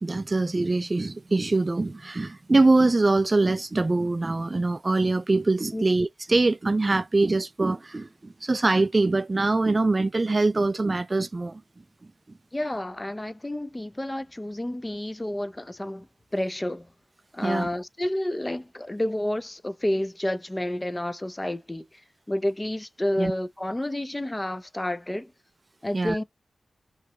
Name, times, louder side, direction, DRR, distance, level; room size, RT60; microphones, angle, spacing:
voice 1, 0.0-11.6 17.4-17.7 23.2-23.3 25.9-26.2, right 2 dB, 30° right, 0.3 m, -23 dB
voice 2, 12.5-16.9 17.3-22.0 22.3-25.3 25.8-26.2, left 1 dB, 15° left, 0.6 m, -30 dB
5.7 x 3.1 x 2.7 m
wide cardioid pair, 75°, 0 cm